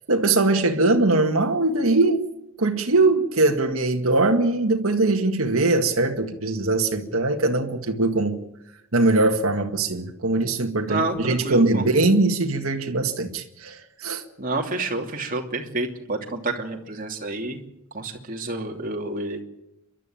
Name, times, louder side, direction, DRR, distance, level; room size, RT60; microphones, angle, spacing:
voice 1, 0.1-2.2 2.6-8.4 8.9-14.2, right 2 dB, 80° right, 1.8 m, -21 dB
voice 2, 10.9-11.8 14.4-17.6 17.9-19.4, right 2 dB, 40° right, 2.8 m, -29 dB
29.5 x 12.5 x 9.0 m
head